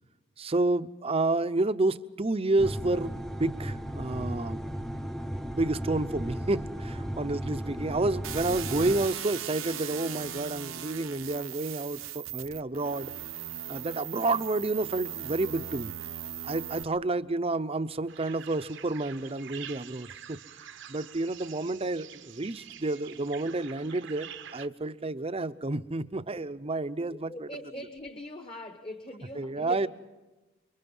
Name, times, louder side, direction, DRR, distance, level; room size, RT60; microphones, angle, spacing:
voice 1, 0.4-4.9 5.4-13.1 13.7-15.9 16.4-20.4 20.9-27.5 29.4-29.9, right 2 dB, 30° right, 0.7 m, -30 dB
sound 1, 2.6-9.1, equal, ahead, 0.8 m, -35 dB
sound 2, 8.2-16.8, right 10 dB, 85° right, 1.0 m, -38 dB
sound 3, 18.1-24.7, right 9 dB, 65° right, 0.9 m, -47 dB
voice 2, 27.1-29.9, left 1 dB, 25° left, 1.2 m, -42 dB
28.5 x 23.5 x 5.5 m
head